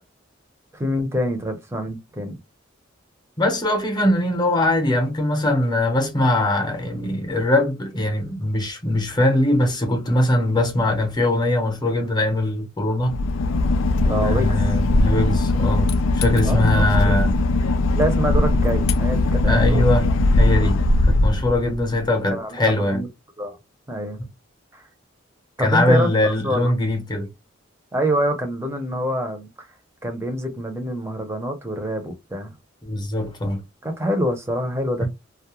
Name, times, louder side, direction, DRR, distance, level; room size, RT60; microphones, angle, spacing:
voice 1, 0.7-2.4 14.0-14.6 16.4-17.2 17.9-19.9 21.7-21.9 22.3-23.1 23.4-23.6 23.9-24.2 24.7-24.9 25.6-26.7 27.9-29.7 30.0-32.5 33.8-35.1, equal, 15° right, 0.7 m, -26 dB
voice 2, 3.4-13.2 14.1-17.3 19.5-20.1 20.4-20.8 21.1-23.0 25.6-27.3 32.8-33.6 35.0-35.1, left 1 dB, 20° left, 0.8 m, -21 dB
Boat Water vehicle / Engine, 13.0-22.0, left 2 dB, 85° left, 0.4 m, -19 dB
2.3 x 2.1 x 2.9 m
head